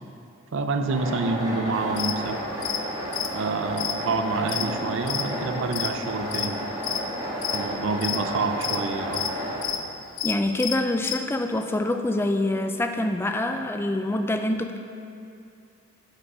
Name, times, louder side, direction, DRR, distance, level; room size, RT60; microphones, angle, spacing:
voice 1, 0.5-2.5 3.2-6.6 7.5-9.3, right 3 dB, 65° right, 7 dB, 0.5 m, -28 dB
sound 1, 0.9-9.6, equal, 20° right, 1.4 m, -32 dB
sound 2, 2.0-2.1 2.6-2.8 3.1-5.3 5.6-6.5 6.8-7.0 7.4-8.2 8.6-8.8 9.1-9.8 10.1-11.2, left 10 dB, 70° left, 0.5 m, -29 dB
voice 2, 10.2-14.8, left 1 dB, 10° left, 6 dB, 0.3 m, -25 dB
6.1 x 5.4 x 5.4 m, 2.6 s
head